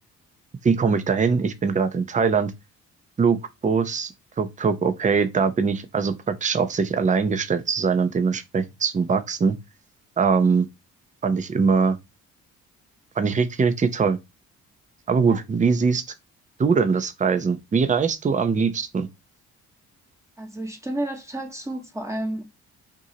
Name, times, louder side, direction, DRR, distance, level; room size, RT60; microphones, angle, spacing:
voice 1, 0.6-2.5 3.2-3.4 3.6-9.6 10.2-10.7 11.2-12.0 13.2-14.2 15.1-16.0 16.6-19.1, right 5 dB, 25° right, 0.7 m, -22 dB
voice 2, 20.4-22.4, right 1 dB, 10° right, 1.1 m, -31 dB
6.2 x 2.7 x 2.8 m
cardioid pair, 90°, 30 cm